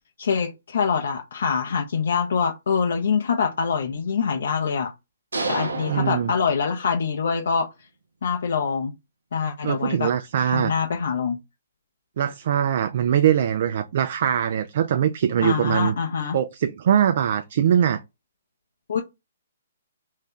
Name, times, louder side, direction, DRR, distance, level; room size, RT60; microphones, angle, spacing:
voice 1, 0.2-4.9 5.5-7.7 8.2-8.9 9.3-10.1 10.4-11.4 15.4-16.4 18.9-19.0, left 6 dB, 70° left, 0.5 m, -24 dB
sound 1, 5.3-7.1, right 3 dB, 90° right, 0.7 m, -30 dB
voice 2, 5.9-6.3 9.6-10.7 12.2-16.0 16.3-18.0, right 9 dB, 55° right, 0.3 m, -22 dB
2.6 x 2.2 x 3.5 m
hypercardioid pair, 140°, 0 cm